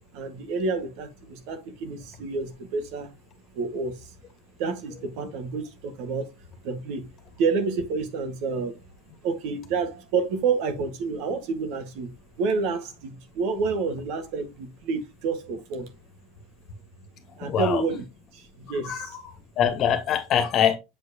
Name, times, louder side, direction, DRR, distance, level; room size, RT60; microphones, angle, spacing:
voice 1, 0.1-3.1 3.5-4.1 4.6-6.2 6.6-7.1 7.4-8.8 9.2-12.1 12.4-15.9 17.4-18.0 18.3-19.2, right 4 dB, 65° right, 1.7 m, -29 dB
voice 2, 17.3-17.8 18.8-20.8, left 9 dB, 50° left, 1.6 m, -24 dB
7.5 x 4.8 x 2.9 m
hypercardioid pair, 90°, 0 cm